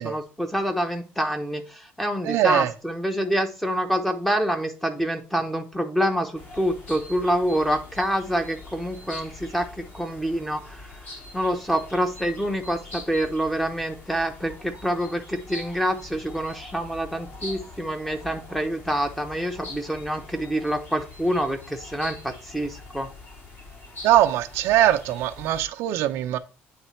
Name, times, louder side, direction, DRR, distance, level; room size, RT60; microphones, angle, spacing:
voice 1, 0.0-10.9 11.3-23.1, equal, 5° left, 1.0 m, -26 dB
voice 2, 2.3-2.7 24.0-26.4, right 13 dB, 85° right, 0.6 m, -21 dB
sound 1, 6.3-25.6, left 2 dB, 45° left, 3.2 m, -43 dB
8.9 x 3.3 x 4.3 m
cardioid pair, 125°, 4 cm